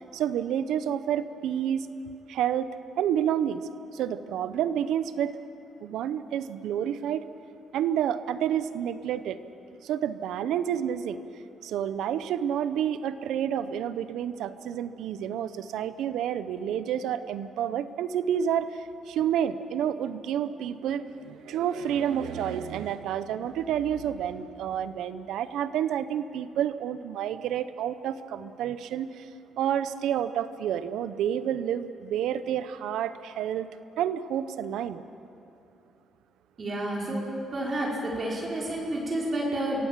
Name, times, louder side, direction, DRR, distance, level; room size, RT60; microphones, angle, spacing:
voice 1, 0.1-1.9 2.3-3.6 3.9-5.4 5.8-7.2 7.7-9.4 9.8-11.2 11.6-29.3 29.6-33.7 34.0-35.0, right 9 dB, 85° right, 13 dB, 0.9 m, -29 dB
voice 2, 36.6-37.3 37.5-39.8, right 1 dB, 40° right, -4 dB, 5.4 m, -30 dB
25.5 x 16.5 x 7.6 m, 2.7 s
cardioid pair, 90°, 0 cm